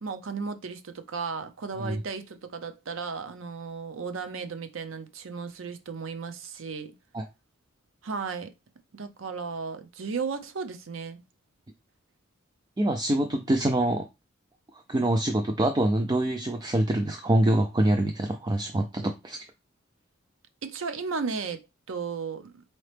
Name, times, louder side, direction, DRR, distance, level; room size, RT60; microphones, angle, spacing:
voice 1, 0.0-6.9 8.0-8.5 8.9-11.2 20.6-22.6, right 5 dB, 70° right, 0.6 m, -35 dB
voice 2, 12.8-14.1 14.9-19.4, right 1 dB, 20° right, 0.4 m, -25 dB
4.1 x 2.9 x 3.3 m
head